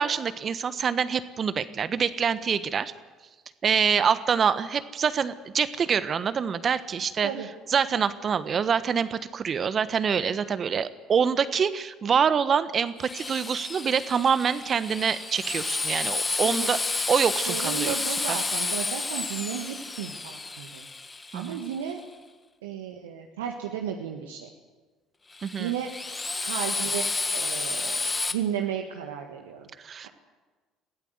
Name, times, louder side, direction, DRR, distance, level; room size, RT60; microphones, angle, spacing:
voice 1, 0.0-2.9 3.6-7.3 7.7-16.8 17.1-18.0 18.3-18.4 21.3-21.6 25.4-25.7 29.8-30.1, right 7 dB, 45° right, 13 dB, 1.2 m, -25 dB
Drill, 13.0-21.9 25.3-28.3, left 3 dB, 25° left, 1.8 m, -31 dB
voice 2, 16.2-17.0 17.5-20.9 21.3-22.0 22.6-24.5 25.6-25.9 26.4-29.7, right 9 dB, 80° right, 2 dB, 1.5 m, -34 dB
22.0 x 16.0 x 8.0 m, 1.3 s
hypercardioid pair, 60°, 0 cm